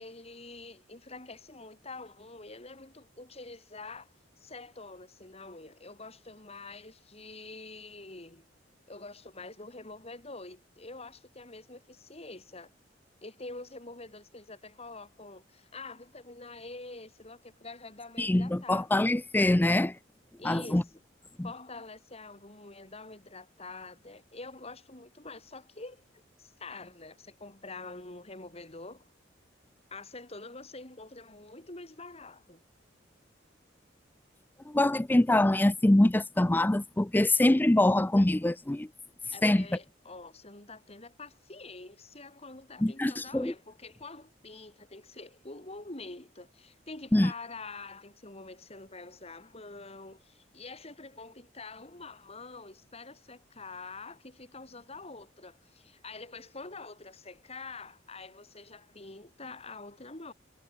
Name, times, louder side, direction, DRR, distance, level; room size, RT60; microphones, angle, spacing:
voice 1, 0.0-8.5 8.9-12.7 13.2-19.1 20.4-20.8 21.4-26.0 26.4-29.1 29.9-32.6 39.3-60.3, left 3 dB, 35° left, 3.8 m, -46 dB
voice 2, 18.2-20.0 20.4-20.8 21.4-21.5 34.7-38.9 39.4-39.7 42.8-43.5 47.1-47.3, left 1 dB, 10° left, 0.4 m, -24 dB
head